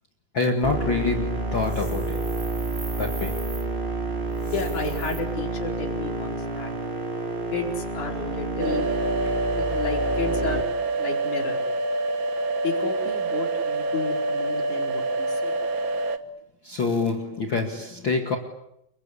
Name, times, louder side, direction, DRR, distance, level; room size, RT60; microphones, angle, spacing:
voice 1, 0.3-2.3 3.0-3.4 9.3-9.4 16.6-18.4, left 3 dB, 40° left, 3 dB, 2.3 m, -26 dB
sound 1, 0.6-10.6, right 2 dB, 15° right, 4.6 m, -29 dB
sound 2, 1.6-3.7 4.3-5.2, right 3 dB, 35° right, 0.8 m, -42 dB
voice 2, 4.4-6.7 7.5-8.9 9.5-10.7 11.0-11.6 12.6-15.5, left 3 dB, 55° left, 2 dB, 5.9 m, -32 dB
sound 3, 8.6-16.2, right 2 dB, 65° right, 1.2 m, -26 dB
29.0 x 23.5 x 8.5 m, 0.80 s
omnidirectional pair, 4.1 m